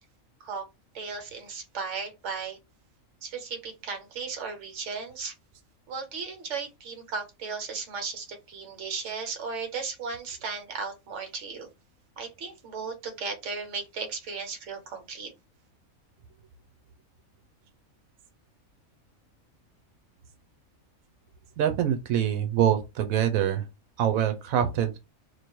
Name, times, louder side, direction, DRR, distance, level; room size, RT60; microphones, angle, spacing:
voice 1, 0.9-2.6 3.2-5.3 5.9-11.7 12.2-15.3, right 5 dB, 60° right, 1.2 m, -36 dB
voice 2, 21.6-23.6 24.0-25.0, right 10 dB, 90° right, 1.0 m, -25 dB
3.0 x 2.5 x 4.4 m
omnidirectional pair, 1.4 m